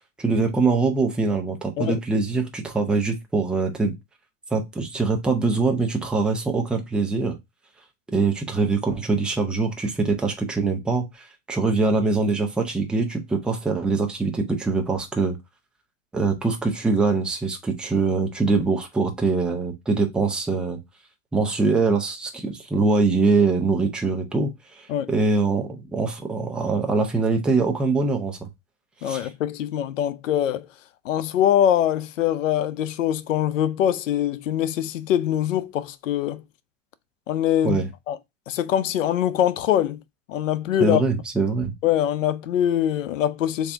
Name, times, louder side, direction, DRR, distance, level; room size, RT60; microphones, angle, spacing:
voice 1, 0.2-4.0 4.5-7.4 8.1-15.4 16.1-20.8 21.3-28.5 29.0-29.3 37.6-37.9 40.8-41.7, right 3 dB, 5° right, 0.3 m, -23 dB
voice 2, 29.0-30.7 31.0-36.4 37.3-38.2 38.5-40.0 40.3-41.0 41.8-43.7, left 11 dB, 90° left, 0.6 m, -23 dB
3.5 x 2.7 x 3.2 m
hypercardioid pair, 130°, 37 cm